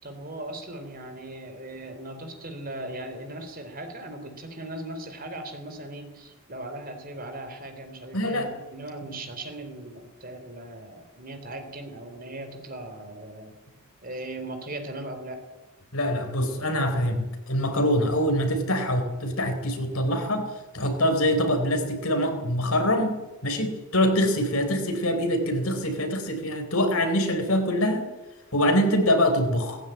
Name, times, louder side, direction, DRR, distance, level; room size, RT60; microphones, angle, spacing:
voice 1, 0.0-13.5 14.0-15.4, right 1 dB, 40° right, 7 dB, 3.4 m, -38 dB
voice 2, 8.1-8.5 9.0-9.1 15.9-28.1 28.5-29.8, equal, 80° left, 5 dB, 3.9 m, -24 dB
18.0 x 16.0 x 9.0 m, 1.1 s
head